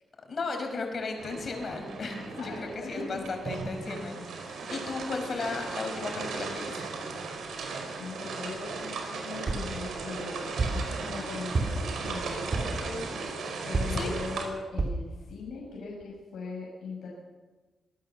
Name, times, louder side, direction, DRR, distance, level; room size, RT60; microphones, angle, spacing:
voice 1, 0.3-6.8 13.9-14.1, left 3 dB, 45° left, 3 dB, 5.2 m, -35 dB
sound 1, 1.2-14.5, right 4 dB, 85° right, 4.8 m, -37 dB
voice 2, 2.3-3.3 8.0-17.1, left 3 dB, 85° left, -4 dB, 6.1 m, -40 dB
sound 2, 9.5-9.8 10.6-10.9 11.5-12.0 12.5-12.9 13.7-14.1 14.8-15.1 15.6-15.7 16.0-16.1, right 3 dB, 40° right, 3.0 m, -29 dB
25.0 x 17.5 x 7.1 m, 1.2 s
wide cardioid pair, 135°, 0 cm